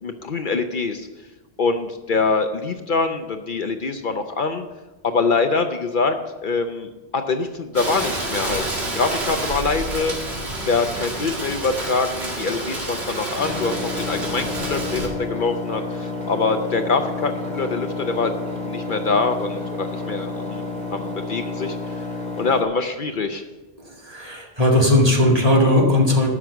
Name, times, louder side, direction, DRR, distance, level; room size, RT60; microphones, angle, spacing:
voice 1, 0.0-1.1 1.6-4.6 5.0-6.2 6.4-10.3 10.7-22.0 22.4-23.4, left 4 dB, 55° left, 7 dB, 0.8 m, -24 dB
Rain, 7.7-15.1, right 1 dB, 85° right, 2.4 m, -29 dB
Engine, 13.3-22.6, left 2 dB, 5° left, 2.4 m, -30 dB
voice 2, 23.9-26.3, left 1 dB, 35° right, -1 dB, 2.3 m, -17 dB
12.5 x 6.2 x 6.9 m, 1.1 s
omnidirectional pair, 1.1 m